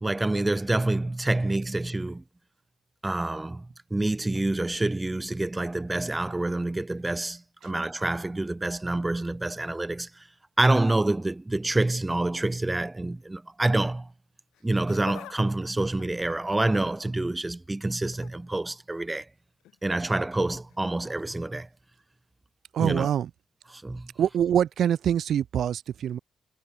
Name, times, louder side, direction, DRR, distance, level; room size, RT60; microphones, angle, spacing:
voice 1, 0.0-2.2 3.0-3.7 3.9-10.3 10.6-14.1 14.6-19.3 19.8-21.7 22.8-23.1 23.7-24.1, right 2 dB, 15° right, 0.7 m, -27 dB
Laughter, 14.5-15.4 15.7-17.0 17.9-18.3 19.6-19.8 20.7-20.8, left 14 dB, 85° left, 1.5 m, -46 dB
voice 2, 22.7-23.3 24.2-26.2, right 9 dB, 65° right, 0.9 m, -24 dB
cardioid pair, 90°, 0 cm